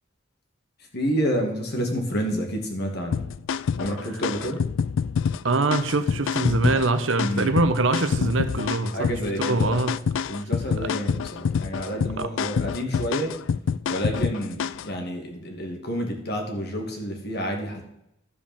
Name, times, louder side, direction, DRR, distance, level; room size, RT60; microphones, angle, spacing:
voice 1, 0.9-3.2 3.8-4.6 7.2-7.6 8.9-9.8 10.3-13.3 13.9-17.8, equal, 55° left, 2 dB, 2.3 m, -29 dB
sound 1, 3.1-14.9, left 6 dB, 75° left, 0.3 m, -27 dB
voice 2, 5.4-9.1 9.4-9.9 12.2-12.3, right 3 dB, 75° right, 11 dB, 0.9 m, -23 dB
12.5 x 5.2 x 7.1 m, 0.79 s
head